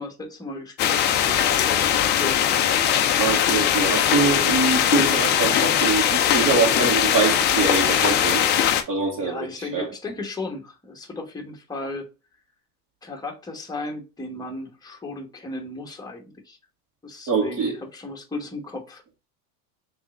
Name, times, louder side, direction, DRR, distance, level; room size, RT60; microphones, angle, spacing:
voice 1, 0.0-2.4 9.2-12.1 13.0-16.6 17.0-19.3, left 2 dB, 10° left, 1.0 m, -35 dB
sound 1, 0.8-8.8, left 10 dB, 25° left, 0.3 m, -20 dB
voice 2, 3.2-8.4 8.9-9.8 17.3-17.7, right 5 dB, 45° right, 2.3 m, -24 dB
3.4 x 3.3 x 3.8 m
supercardioid pair, 110°, 47 cm